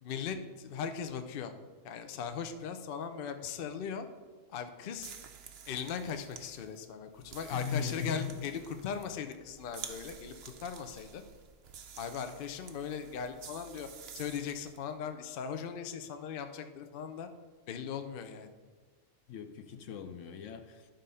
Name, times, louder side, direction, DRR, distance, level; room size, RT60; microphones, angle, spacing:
voice 1, 0.0-1.5 1.8-4.1 4.5-5.1 5.7-11.2 12.0-13.9 14.1-17.3 17.7-18.5, left 7 dB, 55° left, 8 dB, 0.7 m, -39 dB
sound 1, 4.9-14.8, right 7 dB, 60° right, 0.9 m, -50 dB
voice 2, 7.5-8.4 9.9-10.0 19.3-20.9, left 6 dB, 75° left, 8 dB, 1.0 m, -38 dB
11.5 x 3.8 x 5.5 m, 1.4 s
omnidirectional pair, 1.3 m